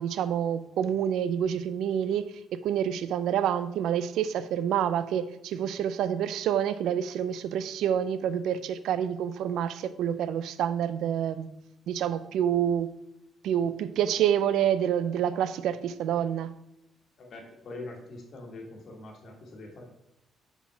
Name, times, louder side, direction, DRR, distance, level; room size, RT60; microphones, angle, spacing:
voice 1, 0.0-11.5 11.9-12.9 13.4-16.5, right 9 dB, 80° right, 13 dB, 0.4 m, -28 dB
voice 2, 17.2-19.9, left 2 dB, 60° left, 1 dB, 1.7 m, -43 dB
5.9 x 4.3 x 5.6 m, 0.86 s
cardioid pair, 90°, 0 cm